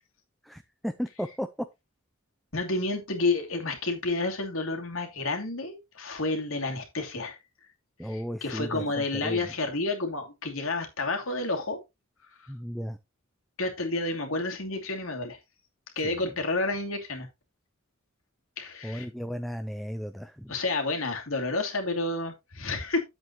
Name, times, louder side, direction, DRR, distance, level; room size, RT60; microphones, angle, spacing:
voice 1, 0.4-1.7 8.0-9.5 12.5-13.0 16.0-16.2 18.8-20.5, equal, ahead, 0.5 m, -35 dB
voice 2, 2.5-7.4 8.0-11.8 13.6-15.4 16.0-17.3 18.6-19.1 20.5-23.0, left 2 dB, 75° left, 2.7 m, -30 dB
9.7 x 8.0 x 3.0 m
head